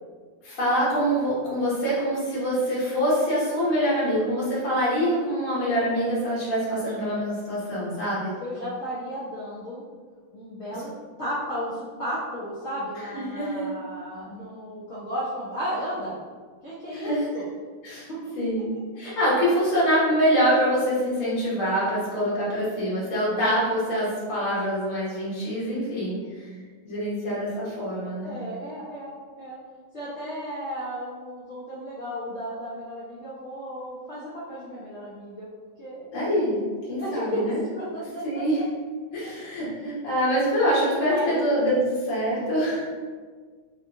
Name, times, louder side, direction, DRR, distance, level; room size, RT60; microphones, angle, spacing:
voice 1, 0.4-8.3 13.1-13.7 16.9-17.2 17.8-18.1 18.3-18.7 19.0-26.5 26.8-28.3 36.1-36.6 36.9-37.6 38.2-38.6 39.1-42.8, equal, 45° left, -8 dB, 1.3 m, -25 dB
voice 2, 8.4-9.8 10.3-10.9 11.2-16.2 16.6-17.5 18.1-18.2 22.5-22.6 28.2-29.6 29.9-35.5 35.8-36.1 37.0-38.4 39.2-39.3 41.1-41.5, equal, 85° left, -10 dB, 0.6 m, -34 dB
3.5 x 2.7 x 2.5 m, 1.5 s
omnidirectional pair, 2.3 m